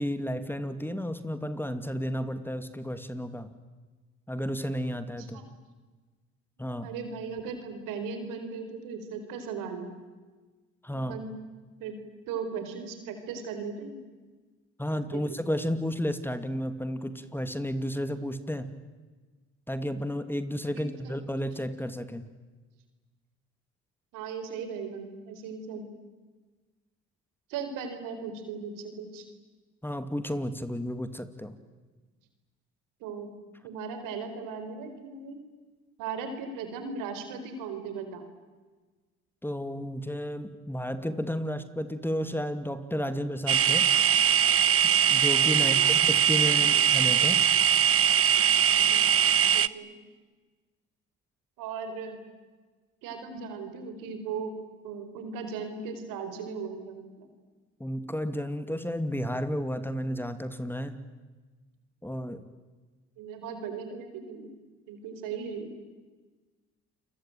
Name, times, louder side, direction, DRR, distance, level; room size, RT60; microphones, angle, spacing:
voice 1, 0.0-3.5 4.3-5.4 6.6-6.9 10.8-11.2 14.8-18.7 19.7-22.3 29.8-31.6 39.4-43.9 44.8-47.4 57.8-61.0 62.0-62.5, equal, 5° left, 10 dB, 2.5 m, -32 dB
voice 2, 5.2-5.5 6.8-9.9 11.1-11.3 11.8-12.0 12.3-14.0 15.1-15.4 20.7-21.2 24.1-25.9 27.5-29.2 33.0-33.4 33.6-35.4 36.0-38.3 45.6-45.9 46.7-46.8 48.7-49.1 49.5-49.9 51.6-52.2 53.0-54.6 54.8-57.3 63.2-64.5 64.9-65.7, right 5 dB, 85° right, 8 dB, 4.5 m, -37 dB
sound 1, 43.5-49.7, right 9 dB, 45° right, 1.0 m, -22 dB
29.0 x 22.5 x 9.2 m, 1.3 s
supercardioid pair, 65°, 32 cm